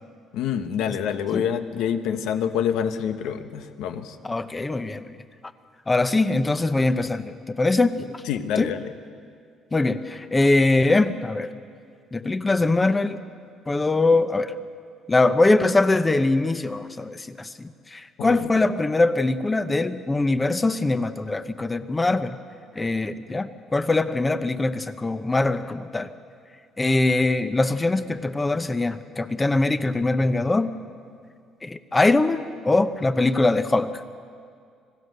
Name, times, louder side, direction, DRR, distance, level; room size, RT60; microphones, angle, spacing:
voice 1, 0.3-4.1 8.3-8.9 18.2-18.5, left 8 dB, 80° left, 9 dB, 1.2 m, -27 dB
voice 2, 4.2-5.1 5.9-8.2 8.6-8.7 9.7-11.5 12.1-13.2 13.7-14.5 15.1-22.4 22.7-26.1 26.8-30.7 31.6-34.1, left 2 dB, 15° left, 11 dB, 0.8 m, -22 dB
26.0 x 17.5 x 6.7 m, 2.3 s
cardioid pair, 130°, 0 cm